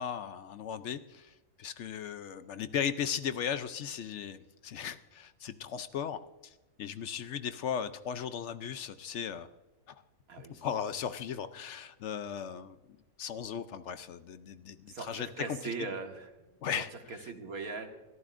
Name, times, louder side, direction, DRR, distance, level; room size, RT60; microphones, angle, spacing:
voice 1, 0.0-9.5 9.9-10.0 10.5-12.8 13.2-15.6 16.6-16.9, left 8 dB, 65° left, 11 dB, 0.8 m, -37 dB
voice 2, 10.3-10.7 14.9-16.3 17.1-17.9, right 3 dB, 90° right, 4 dB, 1.9 m, -39 dB
22.0 x 14.0 x 2.5 m, 1.1 s
omnidirectional pair, 1.5 m